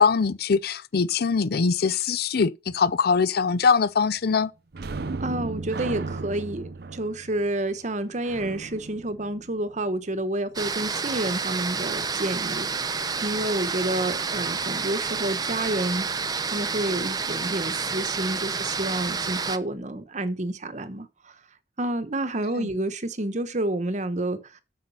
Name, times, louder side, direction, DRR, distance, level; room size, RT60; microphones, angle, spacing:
voice 1, 0.0-4.5 22.6-22.7, left 5 dB, 55° left, 0.5 m, -22 dB
sound 1, 4.7-10.1 17.5-17.6 18.0-18.2, right 3 dB, 60° right, 0.7 m, -36 dB
voice 2, 5.2-16.1 16.5-21.3 21.8-24.6, right 1 dB, 40° right, 1.0 m, -29 dB
sound 2, 10.5-19.6, right 5 dB, 20° right, 0.7 m, -29 dB
8.3 x 6.6 x 5.6 m
head